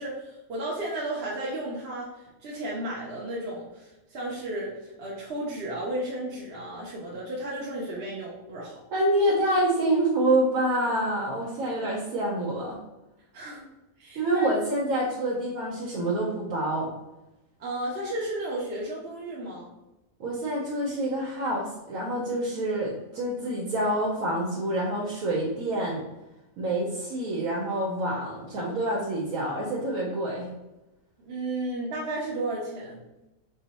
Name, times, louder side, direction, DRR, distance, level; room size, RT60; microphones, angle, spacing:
voice 1, 0.0-2.1 2.4-4.7 5.0-8.8 13.3-13.7 14.0-14.5 17.6-19.7 31.2-33.0, right 1 dB, 55° right, -5 dB, 0.8 m, -33 dB
voice 2, 8.9-12.8 14.1-16.9 20.2-26.0 26.6-30.5, right 1 dB, 80° right, -4 dB, 1.1 m, -27 dB
3.7 x 2.1 x 4.0 m, 0.96 s
omnidirectional pair, 1.5 m